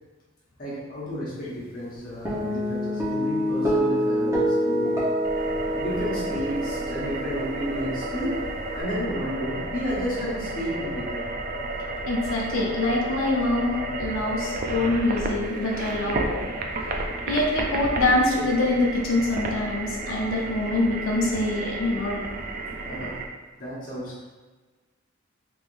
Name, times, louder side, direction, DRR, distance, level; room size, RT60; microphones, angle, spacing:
voice 1, 0.6-5.0 5.7-8.4 8.7-11.2 22.9-23.2 23.6-24.3, equal, 45° left, -7 dB, 1.0 m, -32 dB
Guitar, 2.3-8.8, equal, 15° right, 0.9 m, -27 dB
sound 1, 5.2-23.3, right 2 dB, 45° right, 0.4 m, -32 dB
voice 2, 12.1-16.4 17.3-22.2, left 2 dB, 80° left, -3 dB, 0.7 m, -25 dB
3.5 x 3.4 x 2.6 m, 1.3 s
head